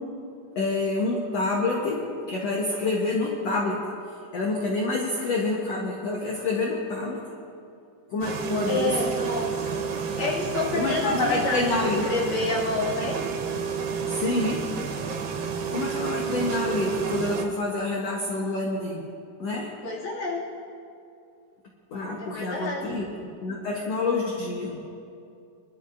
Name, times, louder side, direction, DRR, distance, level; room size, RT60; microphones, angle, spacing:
voice 1, 0.6-2.0 2.3-3.8 4.3-7.2 8.1-9.0 10.7-12.1 14.1-14.6 15.7-19.0 19.4-19.7 21.9-23.1 23.4-24.8, left 2 dB, 60° left, -2 dB, 2.0 m, -27 dB
sound 1, 8.2-17.5, right 6 dB, 90° right, 2.8 m, -30 dB
voice 2, 8.7-13.2 19.8-20.4 22.2-23.0, left 2 dB, 40° left, -6 dB, 3.0 m, -29 dB
25.0 x 12.5 x 2.6 m, 2.5 s
omnidirectional pair, 3.9 m